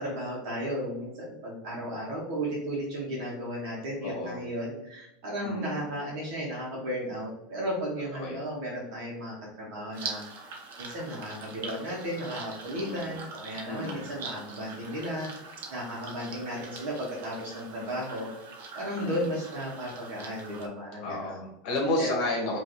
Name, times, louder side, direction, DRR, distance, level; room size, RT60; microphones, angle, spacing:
voice 1, 0.0-10.2 10.8-15.3 15.7-18.3 18.7-21.4 22.0-22.1, equal, 50° right, -4 dB, 1.5 m, -34 dB
voice 2, 4.0-4.4 5.4-5.8 8.2-8.4 12.7-13.1 13.6-14.0 18.9-19.1 21.0-22.6, left 2 dB, 45° left, -1 dB, 1.5 m, -31 dB
sound 1, 9.9-20.7, right 4 dB, 80° right, 1.0 m, -43 dB
5.2 x 3.1 x 3.1 m, 0.87 s
supercardioid pair, 175°, 0 cm